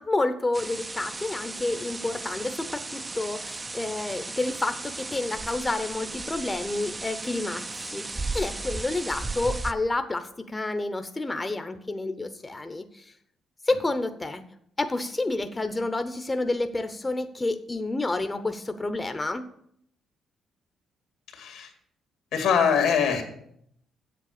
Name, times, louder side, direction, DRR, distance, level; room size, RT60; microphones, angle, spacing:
voice 1, 0.0-13.0 13.7-14.4 14.8-19.5, left 2 dB, 20° left, 8 dB, 0.7 m, -29 dB
sound 1, 0.5-9.7, right 3 dB, 25° right, 0.5 m, -35 dB
voice 2, 21.3-21.7 22.3-23.2, left 7 dB, 90° left, 3 dB, 2.2 m, -23 dB
7.8 x 7.6 x 6.6 m, 0.70 s
cardioid pair, 90°, 0 cm